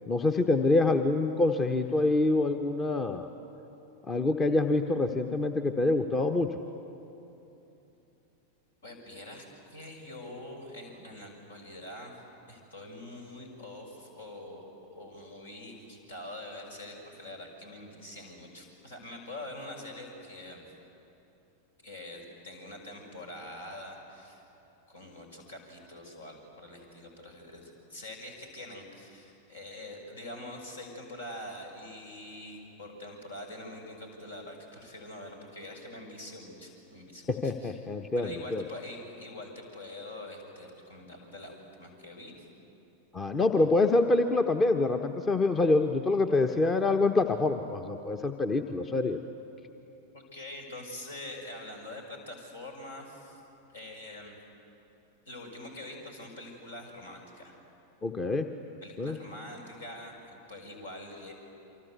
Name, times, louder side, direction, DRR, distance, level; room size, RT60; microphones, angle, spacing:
voice 1, 0.1-3.3 4.0-6.6 37.3-38.6 43.1-49.2 58.0-58.5 59.0-59.2, left 2 dB, 20° left, 7 dB, 1.1 m, -26 dB
voice 2, 8.8-12.2 12.5-20.6 21.8-24.4 24.9-37.7 38.2-42.5 50.1-53.4 53.7-54.4 55.3-57.6 58.8-61.3, left 1 dB, 70° left, 2 dB, 6.0 m, -44 dB
29.0 x 24.5 x 8.2 m, 3.0 s
figure-of-eight pair, 90°, 0 cm